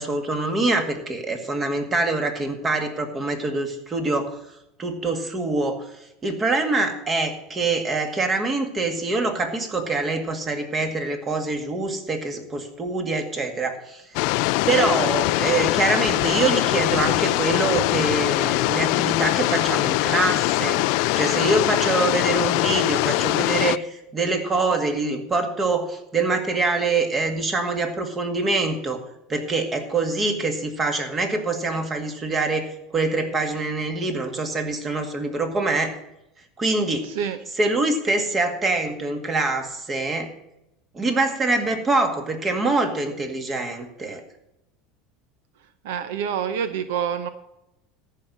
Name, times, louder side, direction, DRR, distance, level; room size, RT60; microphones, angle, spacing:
voice 1, 0.0-4.4 4.8-5.9 6.2-14.0 14.7-20.8 21.2-29.0 29.3-36.0 36.6-37.1 37.6-40.3 40.9-44.2, right 3 dB, 25° right, 6 dB, 2.0 m, -24 dB
sound 1, 14.2-23.8, left 21 dB, 65° left, 0.3 m, -22 dB
voice 2, 45.8-47.3, right 8 dB, 80° right, 11 dB, 0.8 m, -26 dB
14.0 x 5.8 x 7.6 m, 0.87 s
supercardioid pair, 115°, 0 cm